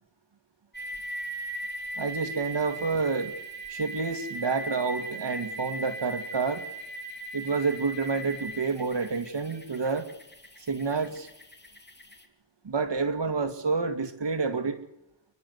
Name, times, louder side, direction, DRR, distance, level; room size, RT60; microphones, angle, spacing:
sound 1, 0.7-12.3, right 1 dB, 25° left, 3.1 m, -39 dB
voice 1, 2.0-3.3 3.7-6.6 7.3-10.1 10.7-11.3 12.6-14.8, right 4 dB, 70° right, 8 dB, 2.2 m, -29 dB
29.5 x 11.0 x 8.1 m, 0.88 s
wide cardioid pair, 70°, 44 cm